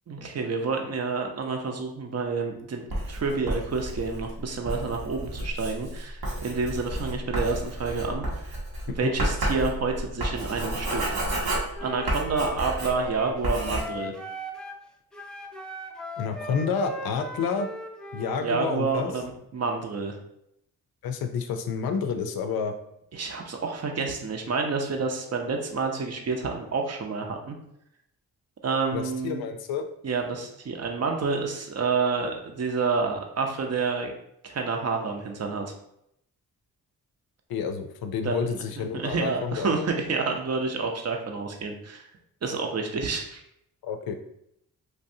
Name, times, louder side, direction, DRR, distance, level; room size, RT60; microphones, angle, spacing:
voice 1, 0.1-2.8 3.1-8.2 8.9-11.1 11.8-14.1 18.4-20.2 23.1-27.6 28.6-29.4 30.0-34.1 34.4-35.7 38.2-38.5 38.8-42.0 42.4-43.4, right 4 dB, 45° right, 2 dB, 0.7 m, -29 dB
Writing, 2.9-13.1 13.4-13.8, right 1 dB, 80° right, 1.0 m, -31 dB
Wind instrument woodwind instrument, 11.7-14.8 15.1-18.5, equal, ahead, 0.4 m, -38 dB
voice 2, 16.2-17.7 18.1-19.1 21.0-22.7 28.9-29.9 37.5-39.7 43.8-44.2, left 6 dB, 75° left, 6 dB, 0.5 m, -29 dB
3.3 x 2.6 x 2.6 m, 0.77 s
supercardioid pair, 50°, 37 cm